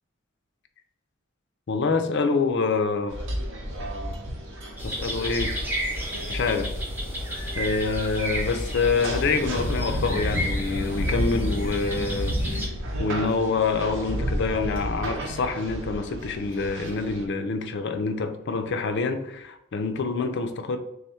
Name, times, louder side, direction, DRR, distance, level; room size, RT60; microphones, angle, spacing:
voice 1, 1.7-3.2 4.8-5.6 6.3-6.7 7.6-12.7 13.0-20.8, left 4 dB, 55° left, 7 dB, 0.4 m, -26 dB
sound 1, 3.1-17.3, equal, 65° right, 0.7 m, -32 dB
sound 2, 4.8-12.7, equal, 10° right, 0.6 m, -31 dB
3.4 x 2.3 x 4.2 m, 0.84 s
head